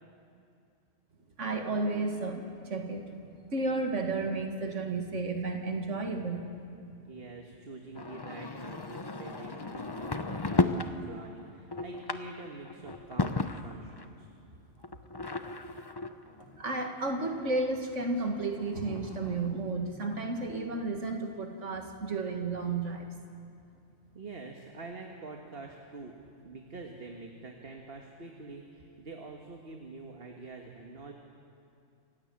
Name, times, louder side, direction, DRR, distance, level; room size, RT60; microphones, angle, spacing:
voice 1, 1.4-6.5 10.1-10.2 16.6-23.1, right 3 dB, 75° right, 3 dB, 2.3 m, -32 dB
voice 2, 7.1-14.3 24.1-26.1 26.4-31.1, right 3 dB, 50° right, 2 dB, 1.8 m, -46 dB
sound 1, 7.9-10.9 11.4-14.0 14.8-17.4 18.0-18.1 18.3-18.4 18.6-19.5, left 3 dB, 25° left, 0.8 m, -34 dB
28.0 x 15.5 x 8.8 m, 2.5 s
omnidirectional pair, 1.3 m